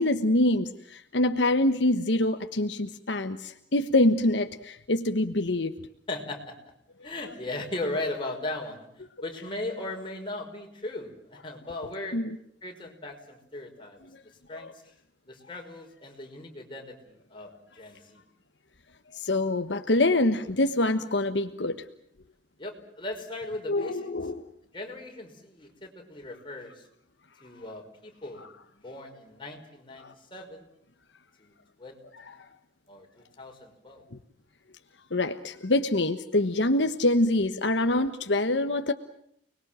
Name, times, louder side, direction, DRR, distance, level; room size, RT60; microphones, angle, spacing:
voice 1, 0.0-5.7 12.1-12.4 14.6-14.7 19.1-21.8 23.7-24.4 30.0-30.1 32.1-32.4 34.1-34.2 35.1-38.9, left 1 dB, 75° left, 8 dB, 1.3 m, -25 dB
voice 2, 6.1-6.5 7.0-8.9 9.2-12.2 12.6-14.0 14.5-14.7 15.3-18.2 22.6-24.1 24.7-26.8 27.4-28.5 28.7-30.7 31.4-31.5 31.8-32.0 32.9-34.0, left 2 dB, 30° left, 1 dB, 5.4 m, -38 dB
30.0 x 21.5 x 7.6 m, 0.69 s
head